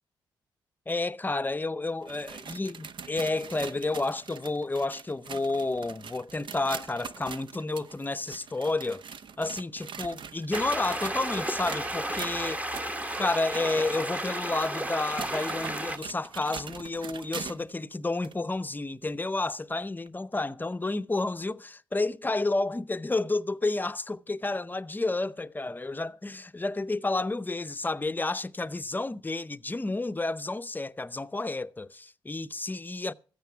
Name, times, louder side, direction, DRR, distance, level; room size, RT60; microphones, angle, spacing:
voice 1, 0.9-9.0 9.4-12.6 13.2-33.1, left 2 dB, 20° left, 0.6 m, -31 dB
sound 1, 1.9-17.7 18.2-18.3 19.1-19.2 20.1-20.2, right 6 dB, 55° right, 0.6 m, -43 dB
sound 2, 10.5-16.0, right 1 dB, 15° right, 1.1 m, -33 dB
14.0 x 9.1 x 5.7 m
supercardioid pair, 55°, 10 cm